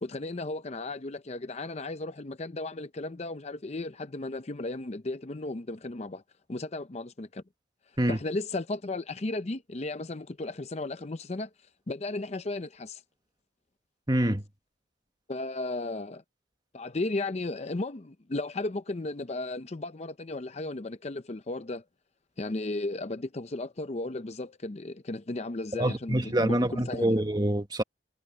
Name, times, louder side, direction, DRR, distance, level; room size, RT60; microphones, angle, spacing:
voice 1, 0.0-6.2 6.5-7.4 8.1-11.5 11.9-13.0 15.3-16.2 16.7-21.8 22.4-27.2, left 2 dB, 35° left, 0.6 m, -35 dB
voice 2, 14.1-14.4 25.7-27.8, right 1 dB, 20° right, 1.4 m, -26 dB
head